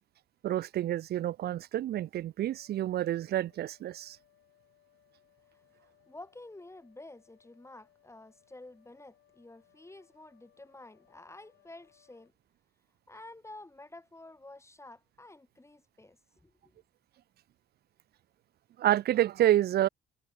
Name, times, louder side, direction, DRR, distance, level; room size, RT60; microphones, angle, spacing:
voice 1, 0.4-4.2 18.8-19.9, right 12 dB, 55° right, 0.4 m, -28 dB
sound 1, 2.5-12.3, left 15 dB, 85° left, 4.9 m, -67 dB
voice 2, 5.5-12.3 13.1-16.7, left 2 dB, 15° left, 5.1 m, -51 dB
cardioid pair, 90°, 20 cm